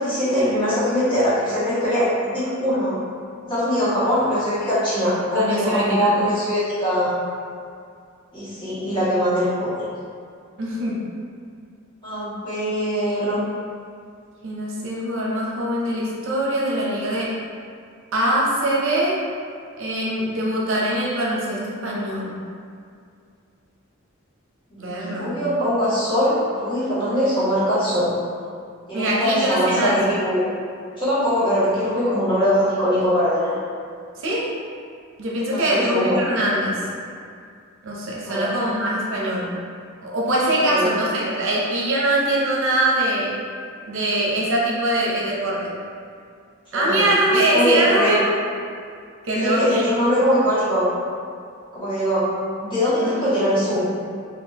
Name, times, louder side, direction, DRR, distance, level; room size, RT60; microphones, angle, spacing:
voice 1, 0.0-3.0 3.4-7.2 8.3-9.8 12.0-13.4 24.8-28.1 28.9-30.5 31.0-33.6 35.5-36.2 38.2-38.5 40.7-40.9 46.7-48.1 49.4-50.9 51.7-52.3 52.6-53.9, equal, 25° left, -13 dB, 1.5 m, -22 dB
voice 2, 5.3-6.1 10.6-11.1 14.4-17.4 18.1-19.2 19.8-22.4 24.8-25.4 28.9-30.0 34.2-34.5 35.2-36.8 37.8-39.5 40.0-43.4 43.9-45.7 46.7-48.2 49.3-49.8 53.0-53.1, right 1 dB, 65° right, -4 dB, 0.6 m, -23 dB
3.6 x 2.5 x 2.7 m, 2.3 s
head